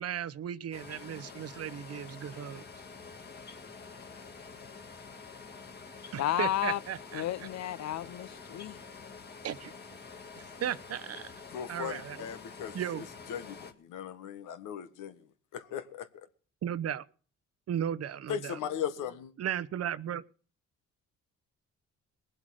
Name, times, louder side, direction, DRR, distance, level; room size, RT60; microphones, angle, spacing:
voice 1, 0.0-2.6 6.1-7.5 9.4-9.7 10.6-11.3 11.7-12.3 12.7-13.1 16.6-17.1 17.7-18.6 19.4-20.2, right 9 dB, 55° right, 0.7 m, -35 dB
sound 1, 0.7-13.7, left 5 dB, 35° left, 1.9 m, -48 dB
voice 2, 6.2-6.8 7.1-8.8, left 12 dB, 60° left, 0.6 m, -32 dB
voice 3, 11.5-12.8 13.3-15.2 15.5-16.1 18.3-19.3, left 9 dB, 85° left, 1.4 m, -38 dB
20.0 x 7.7 x 6.3 m
cardioid pair, 90°, 30 cm